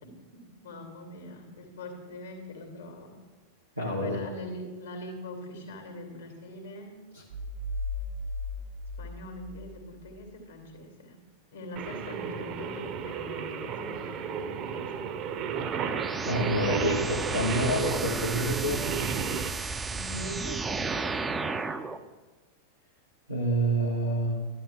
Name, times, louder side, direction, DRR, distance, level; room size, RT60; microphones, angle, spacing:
voice 1, 0.0-3.2 4.0-7.0 9.0-11.2 11.5-15.3 19.9-22.0, left 1 dB, 70° left, 2 dB, 2.5 m, -43 dB
voice 2, 3.8-4.2 7.1-7.2 16.2-18.8 23.3-24.4, right 1 dB, 90° left, -5 dB, 1.3 m, -28 dB
sound 1, 7.3-10.2, left 2 dB, 70° right, 0.9 m, -36 dB
Singing, 11.8-19.5, right 7 dB, 35° right, 0.8 m, -34 dB
sound 2, 15.6-22.0, right 4 dB, 15° right, 0.5 m, -33 dB
12.0 x 11.0 x 3.7 m, 1.3 s
figure-of-eight pair, 90°, 0 cm